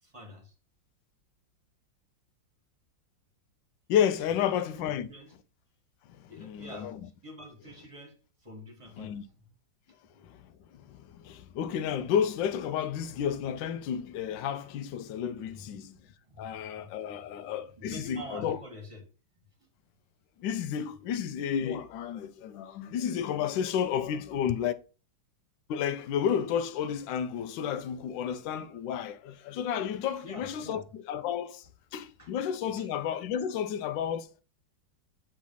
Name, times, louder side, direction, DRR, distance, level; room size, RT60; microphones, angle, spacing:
voice 1, 0.0-0.5 4.3-5.3 6.3-6.9 7.2-9.5 15.5-15.7 16.3-17.4 17.7-19.0 30.2-30.8 32.2-32.3 32.6-32.9, left 1 dB, 20° right, 1.4 m, -47 dB
voice 2, 3.9-5.1 6.4-7.0 9.0-9.2 10.2-10.5 10.7-16.0 16.4-18.6 20.4-24.7 25.7-31.7 31.9-34.3, left 8 dB, 80° left, 1.3 m, -31 dB
7.4 x 3.3 x 5.4 m
omnidirectional pair, 2.0 m